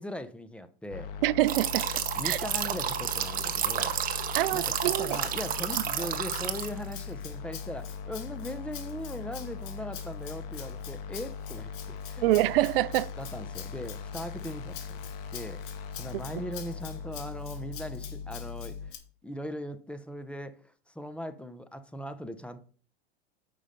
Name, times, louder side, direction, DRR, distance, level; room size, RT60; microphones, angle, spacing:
voice 1, 0.0-1.1 2.2-3.9 4.5-12.3 13.2-15.6 16.0-19.0 19.2-22.6, equal, 5° left, 0.6 m, -39 dB
sound 1, 0.9-18.9, left 5 dB, 65° left, 1.5 m, -40 dB
voice 2, 1.2-1.9 2.2-2.4 4.3-5.2 12.2-13.1, right 16 dB, 65° right, 0.5 m, -25 dB
sound 2, 1.5-6.9, right 9 dB, 25° right, 1.0 m, -31 dB
Rattle (instrument), 4.6-19.0, left 10 dB, 45° left, 1.8 m, -46 dB
8.6 x 5.6 x 5.1 m
hypercardioid pair, 125°, 31 cm